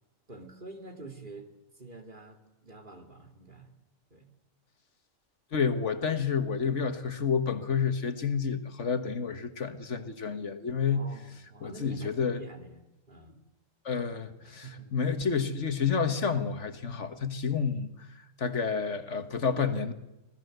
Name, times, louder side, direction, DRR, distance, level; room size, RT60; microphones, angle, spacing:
voice 1, 0.3-3.7 4.1-4.3 9.9-10.2 10.9-12.8 13.1-13.4 14.4-15.0, right 3 dB, 40° right, 5 dB, 2.9 m, -47 dB
voice 2, 5.5-11.1 11.6-12.4 13.8-19.9, left 6 dB, 65° left, 9 dB, 1.7 m, -30 dB
25.5 x 17.0 x 7.9 m, 0.96 s
omnidirectional pair, 1.4 m